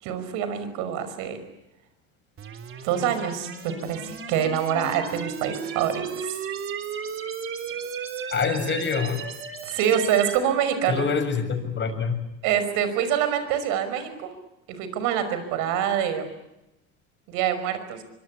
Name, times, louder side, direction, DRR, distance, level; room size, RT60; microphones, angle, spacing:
voice 1, 0.0-1.4 2.8-6.4 9.6-11.0 12.4-14.3 14.8-16.2 17.3-18.0, right 9 dB, 70° right, 10 dB, 5.6 m, -25 dB
sound 1, 2.4-10.4, right 7 dB, 40° right, 3.4 m, -35 dB
voice 2, 8.3-9.3 10.9-12.2, left 5 dB, 35° left, 6 dB, 7.1 m, -26 dB
25.0 x 24.5 x 8.4 m, 0.91 s
supercardioid pair, 90°, 32 cm